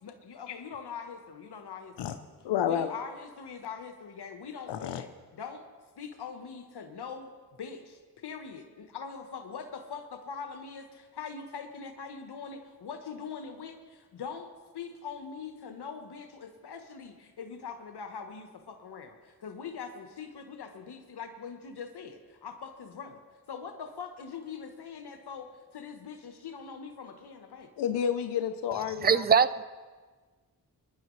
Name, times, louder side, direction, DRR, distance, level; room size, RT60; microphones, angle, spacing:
voice 1, 0.0-2.2 2.6-5.6 6.0-7.3 7.6-14.5 14.7-23.2 23.5-27.7, left 6 dB, 70° left, 5 dB, 1.2 m, -42 dB
voice 2, 2.4-2.9 4.7-5.0 27.8-29.2, left 9 dB, 85° left, 10 dB, 0.6 m, -30 dB
voice 3, 29.0-29.6, right 6 dB, 25° right, 14 dB, 0.6 m, -22 dB
23.0 x 10.5 x 3.2 m, 1.4 s
supercardioid pair, 40°, 41 cm